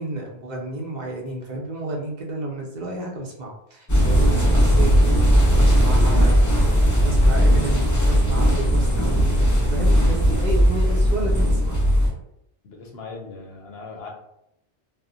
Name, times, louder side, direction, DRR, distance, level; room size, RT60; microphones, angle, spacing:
voice 1, 0.0-11.9, right 1 dB, 50° right, -1 dB, 0.6 m, -32 dB
sound 1, 3.9-12.1, equal, 25° left, 0.4 m, -17 dB
voice 2, 12.6-14.1, left 4 dB, 70° left, 1 dB, 0.8 m, -39 dB
2.1 x 2.1 x 3.7 m, 0.77 s
omnidirectional pair, 1.2 m